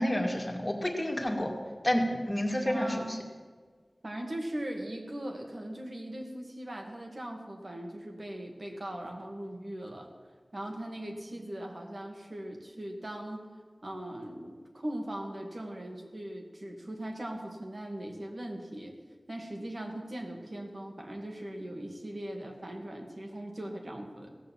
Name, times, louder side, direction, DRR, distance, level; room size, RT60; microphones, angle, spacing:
voice 1, 0.0-1.5 1.8-3.2, equal, 30° left, 1 dB, 2.2 m, -29 dB
voice 2, 2.7-3.2 4.0-10.1 10.5-13.5 13.8-18.9 19.3-24.3, right 1 dB, 55° right, 1 dB, 2.1 m, -39 dB
16.5 x 6.5 x 7.6 m, 1.5 s
wide cardioid pair, 55°, 0 cm